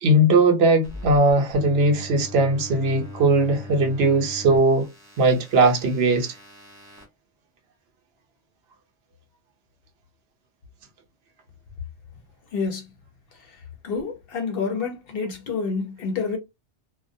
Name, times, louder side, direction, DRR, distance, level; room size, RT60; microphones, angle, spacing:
voice 1, 0.0-4.9 5.2-6.3, right 2 dB, 70° right, 0.8 m, -19 dB
sound 1, 0.8-7.0, left 2 dB, 15° right, 0.7 m, -41 dB
voice 2, 12.5-12.8 13.8-16.4, left 5 dB, 60° left, 0.8 m, -28 dB
2.2 x 2.1 x 2.6 m
omnidirectional pair, 1.1 m